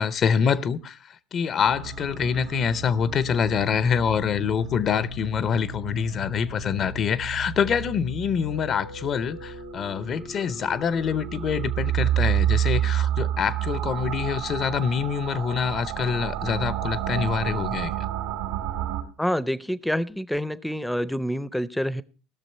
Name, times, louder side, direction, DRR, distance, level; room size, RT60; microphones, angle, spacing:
voice 1, 0.0-17.9, left 7 dB, 45° left, 0.6 m, -25 dB
sound 1, 1.6-19.0, right 9 dB, 75° right, 2.3 m, -30 dB
voice 2, 19.2-22.0, equal, 5° left, 0.6 m, -27 dB
17.5 x 6.4 x 4.4 m
hypercardioid pair, 80°, 0 cm